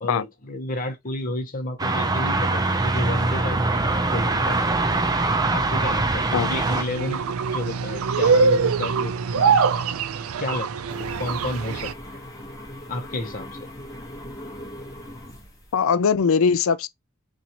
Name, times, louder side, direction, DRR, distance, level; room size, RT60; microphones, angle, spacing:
voice 1, 0.0-4.7 5.5-7.2 7.5-9.6 10.4-10.7 11.0-12.2 12.9-13.6, left 1 dB, 40° left, 1.0 m, -31 dB
sound 1, 1.8-6.8, right 2 dB, 20° right, 0.6 m, -23 dB
sound 2, 6.6-11.9, right 5 dB, 70° right, 0.4 m, -23 dB
sound 3, 10.9-15.9, left 1 dB, 15° left, 1.2 m, -40 dB
voice 2, 15.7-16.9, left 6 dB, 65° left, 0.4 m, -20 dB
4.2 x 2.6 x 2.9 m
head